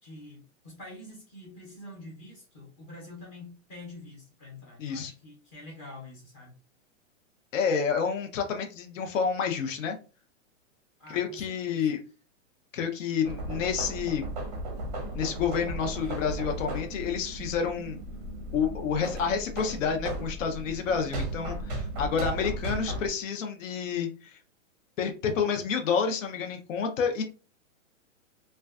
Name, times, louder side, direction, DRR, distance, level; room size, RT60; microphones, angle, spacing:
voice 1, 0.0-6.6 11.0-11.9, left 2 dB, 15° left, -3 dB, 0.6 m, -46 dB
voice 2, 4.8-5.1 7.5-10.0 11.1-12.0 12.7-14.2 15.1-18.0 18.5-24.4 25.0-27.2, left 6 dB, 75° left, 4 dB, 0.6 m, -29 dB
sound 1, 13.2-23.1, right 1 dB, 35° right, 0.5 m, -36 dB
2.5 x 2.2 x 2.3 m, 0.34 s
hypercardioid pair, 160°, 39 cm